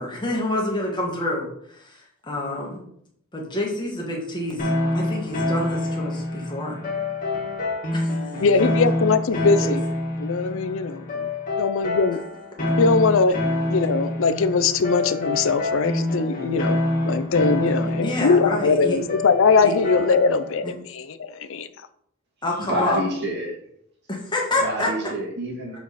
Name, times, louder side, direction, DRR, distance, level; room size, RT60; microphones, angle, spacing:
voice 1, 0.0-2.8 3.3-6.8 7.9-8.2 9.6-9.7 17.8-19.0 19.6-19.7 20.6-20.7 22.4-23.0 24.1-24.9, left 1 dB, 20° left, -2 dB, 1.6 m, -28 dB
sound 1, 4.6-20.5, left 1 dB, 40° left, 1.9 m, -26 dB
voice 2, 8.4-9.8 10.2-11.3 11.6-12.2 12.8-13.3 13.7-16.8 17.0-21.7, left 4 dB, 60° left, 12 dB, 0.5 m, -21 dB
voice 3, 22.6-23.6 24.6-25.8, equal, 50° right, -2 dB, 2.3 m, -27 dB
6.9 x 4.7 x 4.1 m, 0.70 s
head